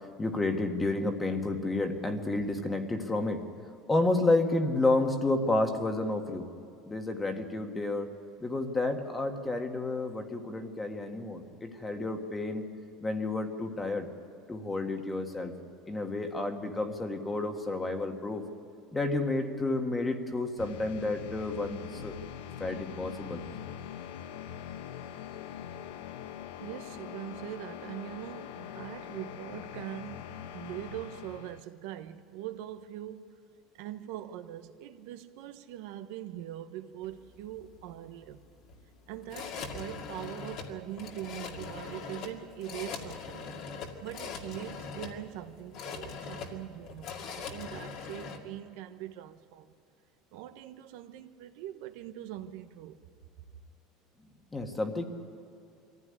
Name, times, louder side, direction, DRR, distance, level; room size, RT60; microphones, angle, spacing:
voice 1, 0.2-3.4 3.9-6.4 6.8-8.1 8.4-12.6 13.0-14.1 14.5-15.5 15.9-18.4 18.9-22.2 22.6-23.4 54.5-55.0, left 2 dB, 10° left, 1.6 m, -30 dB
sound 1, 20.6-31.6, left 9 dB, 90° left, 1.0 m, -43 dB
voice 2, 26.6-30.3 30.5-33.2 33.7-38.4 39.1-43.6 44.0-49.7 50.3-53.0, right 12 dB, 75° right, 1.1 m, -42 dB
sound 2, 37.0-48.4, left 5 dB, 50° left, 2.2 m, -42 dB
23.0 x 15.0 x 9.8 m
cardioid pair, 155°, 0 cm